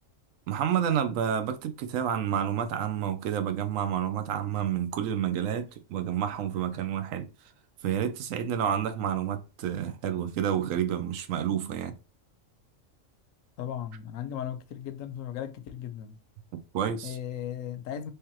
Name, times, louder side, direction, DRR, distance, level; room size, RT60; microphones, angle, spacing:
voice 1, 0.5-7.3 7.8-12.0 16.5-17.2, right 9 dB, 80° right, 1.0 m, -29 dB
voice 2, 13.6-16.2 17.0-18.1, left 10 dB, 80° left, 1.0 m, -36 dB
3.4 x 3.2 x 3.0 m
omnidirectional pair, 1.4 m